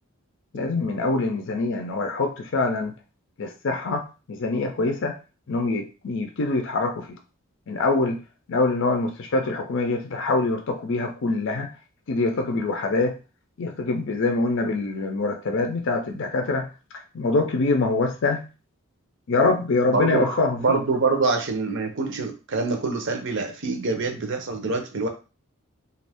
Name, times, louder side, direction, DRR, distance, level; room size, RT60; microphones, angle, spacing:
voice 1, 0.5-2.9 3.4-5.1 5.5-7.1 7.7-8.2 8.5-11.7 12.1-13.2 13.6-16.7 17.1-18.5 19.3-20.8, left 3 dB, 55° left, 4 dB, 0.5 m, -24 dB
voice 2, 19.9-20.3 20.6-25.1, right 3 dB, 55° right, 4 dB, 0.7 m, -25 dB
2.5 x 2.3 x 3.4 m, 0.32 s
head